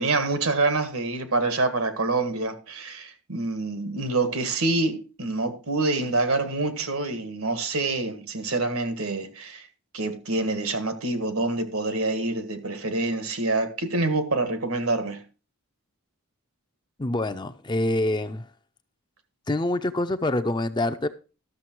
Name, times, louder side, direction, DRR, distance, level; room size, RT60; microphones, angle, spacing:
voice 1, 0.0-9.7 9.9-15.2, right 2 dB, 80° right, 1.7 m, -26 dB
voice 2, 17.0-18.5 19.5-21.1, left 1 dB, 20° left, 0.5 m, -26 dB
13.0 x 6.8 x 4.5 m
head